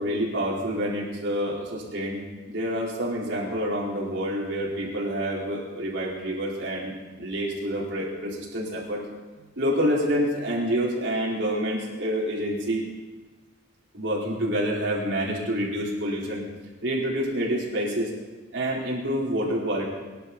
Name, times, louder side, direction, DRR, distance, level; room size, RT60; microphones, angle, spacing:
voice 1, 0.0-2.2 2.5-9.0 9.4-12.8 13.9-16.4 16.8-18.1 18.5-19.8, equal, 75° right, -4 dB, 4.5 m, -27 dB
24.5 x 11.5 x 4.3 m, 1.2 s
head